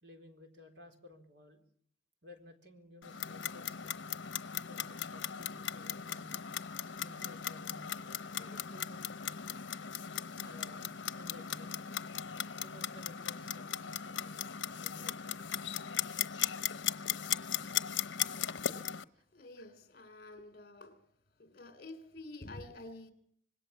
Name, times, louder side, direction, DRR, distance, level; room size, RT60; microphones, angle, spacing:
voice 1, 0.0-1.6 2.2-4.0 4.5-6.4 7.0-9.0 10.4-11.9 12.6-15.4 19.2-19.3 20.4-20.5, left 1 dB, 65° right, 4.1 m, -56 dB
Clock, 3.0-19.0, left 9 dB, 85° left, 0.9 m, -38 dB
voice 2, 19.3-21.1 21.4-23.1, left 2 dB, 50° left, 3.4 m, -49 dB
25.5 x 20.5 x 7.2 m
head